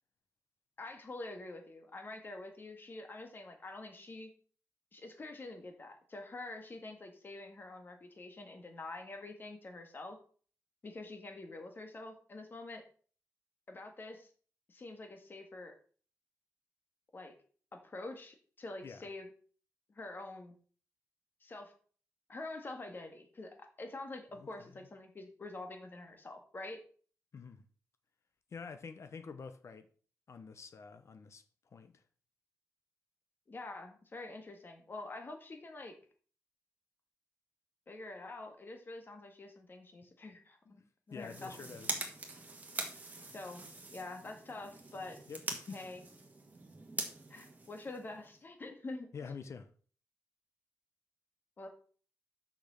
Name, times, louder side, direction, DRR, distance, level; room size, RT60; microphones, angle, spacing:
voice 1, 0.8-4.3 4.9-10.2 10.8-12.8 13.7-14.3 14.7-15.8 17.1-17.3 17.7-19.3 19.9-20.6 21.4-21.7 22.3-26.8 33.5-36.0 37.9-40.8 41.1-41.6 43.3-45.2 45.7-46.0 47.3-49.1 51.6-51.7, left 2 dB, 35° left, 1.9 m, -46 dB
voice 2, 24.4-24.7 27.3-27.7 28.5-29.9 30.3-31.4 31.7-32.0 40.7-42.0 45.3-45.8 49.1-49.7, left 5 dB, 55° left, 0.9 m, -48 dB
sound 1, 41.1-48.4, right 3 dB, 30° right, 1.6 m, -44 dB
6.8 x 6.2 x 6.4 m
wide cardioid pair, 170°, 6 cm